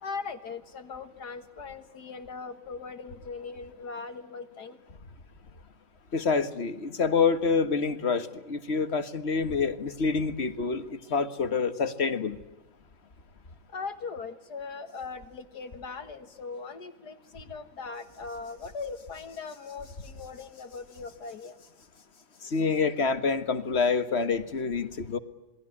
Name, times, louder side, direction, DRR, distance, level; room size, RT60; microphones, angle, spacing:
voice 1, 0.0-4.8 13.7-21.6, left 4 dB, 70° left, 9 dB, 2.1 m, -40 dB
voice 2, 6.1-12.4 22.4-25.2, left 5 dB, 40° left, 11 dB, 1.8 m, -27 dB
28.0 x 21.5 x 9.8 m, 1.0 s
omnidirectional pair, 1.8 m